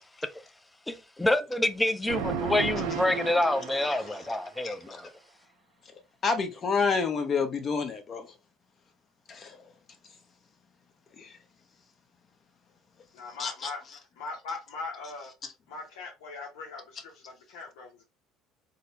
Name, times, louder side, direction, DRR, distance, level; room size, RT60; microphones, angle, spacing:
voice 1, 0.9-5.1, left 1 dB, 10° left, 0.5 m, -27 dB
sound 1, 2.1-4.4, right 6 dB, 90° right, 0.5 m, -33 dB
voice 2, 6.2-8.3 9.3-9.6 11.2-11.3 13.4-13.7, left 5 dB, 40° left, 0.8 m, -28 dB
voice 3, 13.1-13.8 14.2-15.3 15.7-18.0, left 3 dB, 80° left, 0.7 m, -40 dB
4.0 x 2.1 x 2.6 m
supercardioid pair, 85°, 0 cm